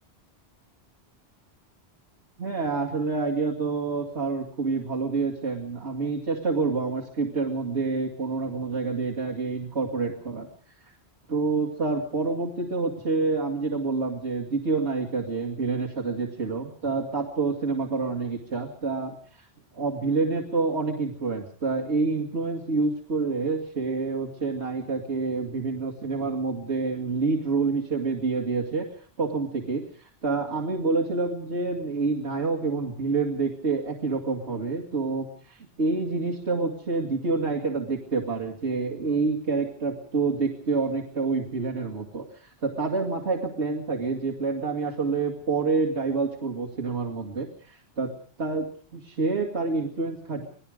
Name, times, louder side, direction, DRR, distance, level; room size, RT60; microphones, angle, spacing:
voice 1, 2.4-10.5 11.3-19.5 19.7-28.9 29.2-50.5, right 4 dB, 85° right, -1 dB, 2.6 m, -28 dB
27.0 x 19.0 x 5.1 m, 0.44 s
omnidirectional pair, 1.1 m